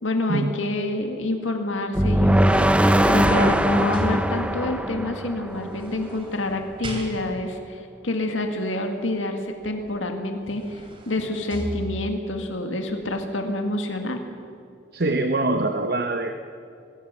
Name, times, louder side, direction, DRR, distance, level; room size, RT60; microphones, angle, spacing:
voice 1, 0.0-2.7 3.1-14.2, left 2 dB, 90° left, 4 dB, 2.0 m, -28 dB
sound 1, 1.9-6.0, equal, 5° right, 0.7 m, -20 dB
sound 2, 2.8-4.8 5.6-7.6 9.9-10.0 10.4-12.4 12.9-13.0, right 1 dB, 30° right, 3.1 m, -38 dB
voice 2, 14.9-16.3, right 2 dB, 55° right, 7 dB, 1.0 m, -24 dB
21.5 x 17.0 x 7.3 m, 2.5 s
head